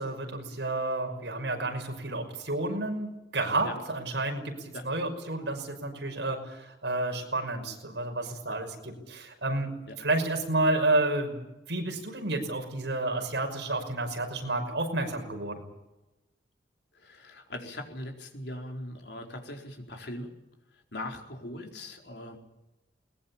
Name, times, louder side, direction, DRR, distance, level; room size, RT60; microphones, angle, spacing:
voice 1, 0.0-11.4 11.7-15.6, right 2 dB, 75° right, 4 dB, 5.7 m, -30 dB
voice 2, 16.9-20.3 20.7-22.4, left 1 dB, 65° left, 3 dB, 4.3 m, -40 dB
21.5 x 20.5 x 8.7 m, 0.99 s
head